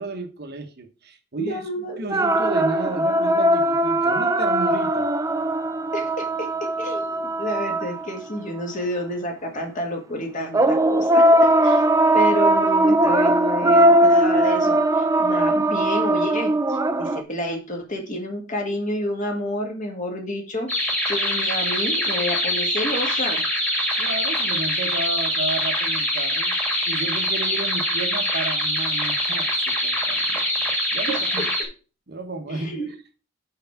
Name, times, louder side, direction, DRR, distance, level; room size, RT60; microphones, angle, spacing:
voice 1, 0.0-5.1 24.0-26.5 26.9-30.4 30.9-31.5 32.1-32.9, right 2 dB, 50° right, 1.1 m, -32 dB
voice 2, 1.4-2.1 5.9-11.4 11.6-11.8 12.1-20.7 21.1-23.4 31.1-31.2 32.5-32.9, left 1 dB, 40° left, 1.8 m, -29 dB
sound 1, 2.1-8.4 10.5-17.2, right 1 dB, 15° right, 0.4 m, -19 dB
sound 2, 20.7-31.6, equal, 10° left, 1.8 m, -24 dB
5.7 x 4.8 x 5.7 m
head